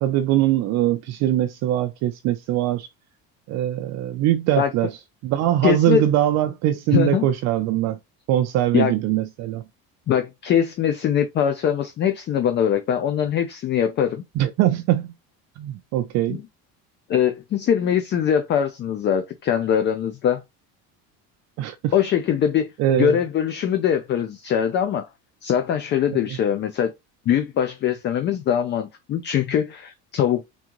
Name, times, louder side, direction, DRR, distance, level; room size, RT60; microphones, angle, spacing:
voice 1, 0.0-2.9 3.5-4.9 5.2-8.0 8.3-9.6 14.4-15.1 15.6-16.4 21.6-21.9 22.8-23.2, right 12 dB, 55° right, 0.5 m, -22 dB
voice 2, 5.6-6.0 6.9-7.3 8.7-8.9 10.1-14.2 16.3-16.5 17.1-20.4 21.9-22.7 23.0-25.1 25.4-26.9 27.3-30.4, left 9 dB, 35° left, 0.4 m, -22 dB
3.7 x 3.6 x 2.9 m
cardioid pair, 165°, 34 cm